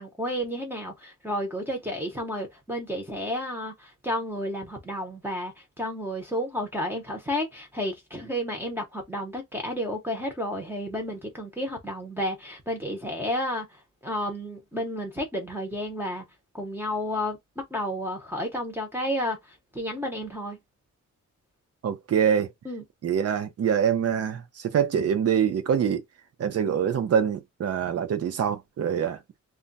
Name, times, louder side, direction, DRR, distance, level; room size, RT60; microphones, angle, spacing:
voice 1, 0.0-16.2 16.5-17.4 17.7-20.6 22.6-22.8, equal, 5° right, 0.7 m, -31 dB
voice 2, 21.8-22.5 23.0-26.0 26.4-29.2, right 8 dB, 50° right, 0.6 m, -25 dB
2.3 x 2.1 x 3.8 m
wide cardioid pair, 170°, 31 cm